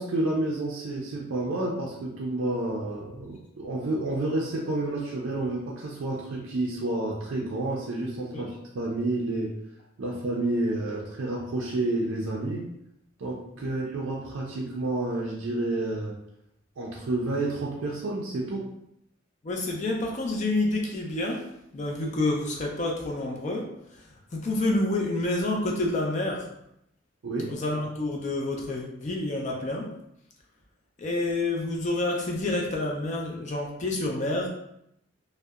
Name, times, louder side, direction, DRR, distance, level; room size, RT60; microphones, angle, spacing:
voice 1, 0.0-9.5 10.0-12.7 13.2-16.1 16.8-18.7 27.2-27.5, right 2 dB, 70° right, -3 dB, 0.4 m, -30 dB
voice 2, 19.4-21.5 21.7-23.7 23.9-24.0 24.3-26.5 27.5-29.9 31.0-34.5, left 2 dB, 35° left, 0 dB, 0.4 m, -28 dB
2.7 x 2.1 x 2.3 m, 0.79 s
head